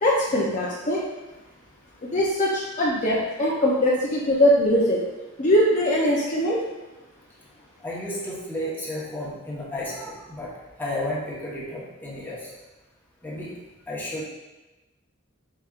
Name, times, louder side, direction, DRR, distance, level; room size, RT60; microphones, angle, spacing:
voice 1, 0.0-1.0 2.0-5.0 5.4-6.6, equal, 35° left, -4 dB, 0.5 m, -21 dB
voice 2, 7.8-10.5 10.8-12.5 13.2-13.5 13.9-14.2, left 1 dB, 10° left, -7 dB, 1.0 m, -32 dB
4.8 x 4.2 x 2.4 m, 1.1 s
head